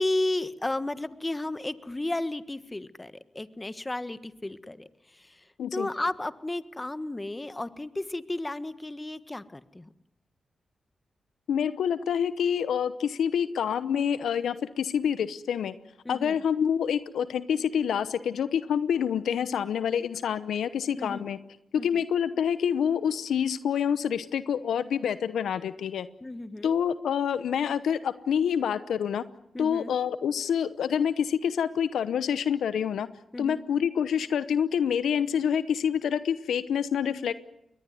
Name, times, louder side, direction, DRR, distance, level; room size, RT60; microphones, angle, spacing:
voice 1, 0.0-4.9 5.2-5.4 5.7-9.9 16.0-16.4 21.0-21.3 21.8-21.9 26.2-26.7 29.5-30.0 33.3-33.6, left 2 dB, 25° left, 13 dB, 1.5 m, -33 dB
voice 2, 11.5-15.7 16.1-21.4 21.7-26.1 26.6-29.2 29.6-33.1 33.4-37.3, left 8 dB, 80° left, 14 dB, 0.9 m, -27 dB
22.5 x 19.0 x 9.5 m, 0.83 s
supercardioid pair, 45°, 0 cm